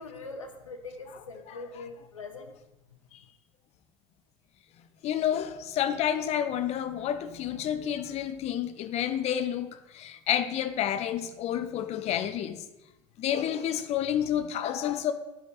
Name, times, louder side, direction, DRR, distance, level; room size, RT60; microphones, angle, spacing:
voice 1, 0.0-2.5, left 3 dB, 80° left, 5 dB, 0.7 m, -42 dB
voice 2, 5.0-12.6 13.2-15.1, left 10 dB, 40° left, 11 dB, 0.6 m, -29 dB
12.0 x 5.2 x 2.5 m, 0.97 s
figure-of-eight pair, 65°, 16 cm